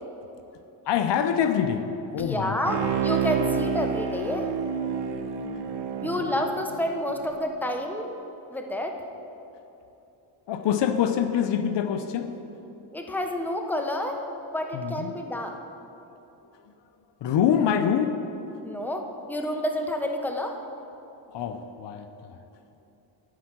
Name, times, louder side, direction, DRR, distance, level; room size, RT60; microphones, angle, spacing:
voice 1, 0.9-1.9 2.1-2.9 6.0-6.1 10.5-12.3 14.7-15.1 17.2-18.2 21.3-22.4, left 8 dB, 65° left, 8 dB, 0.7 m, -25 dB
voice 2, 2.2-4.5 6.0-8.1 8.5-9.0 12.9-14.2 14.5-15.6 18.6-20.6, left 1 dB, 5° left, 3 dB, 0.9 m, -29 dB
Bowed string instrument, 2.7-7.3 7.7-7.8, right 7 dB, 60° right, 0.8 m, -29 dB
13.5 x 4.7 x 5.9 m, 2.9 s
cardioid pair, 80°, 46 cm